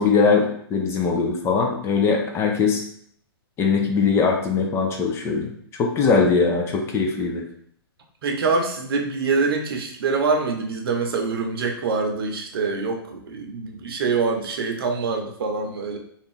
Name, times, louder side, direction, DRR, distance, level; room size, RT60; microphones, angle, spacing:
voice 1, 0.0-2.8 3.6-5.5 5.8-7.4, left 5 dB, 20° left, 1 dB, 0.5 m, -21 dB
voice 2, 8.2-16.0, right 4 dB, 70° right, 2 dB, 0.7 m, -25 dB
2.5 x 2.4 x 3.6 m, 0.65 s
hypercardioid pair, 130°, 13 cm